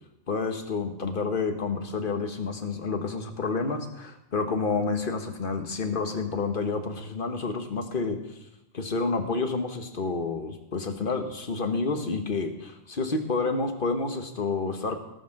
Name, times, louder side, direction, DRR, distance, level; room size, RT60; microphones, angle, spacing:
voice 1, 0.3-8.2 8.7-15.0, left 4 dB, 50° left, 6 dB, 1.4 m, -29 dB
18.0 x 6.1 x 6.6 m, 0.88 s
omnidirectional pair, 1.2 m